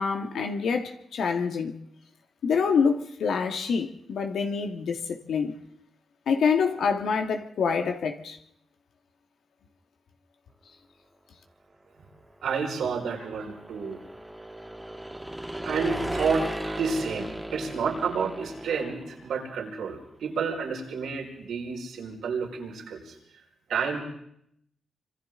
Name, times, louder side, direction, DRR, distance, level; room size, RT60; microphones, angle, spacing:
voice 1, 0.0-1.7 2.4-5.6 6.3-8.4, left 5 dB, 75° left, 1.8 m, -26 dB
voice 2, 12.4-14.0 15.6-23.2 23.7-24.0, right 5 dB, 85° right, 5.0 m, -30 dB
sound 1, 12.7-19.4, right 1 dB, 10° right, 1.4 m, -36 dB
26.5 x 25.5 x 3.8 m
cardioid pair, 70°, 0 cm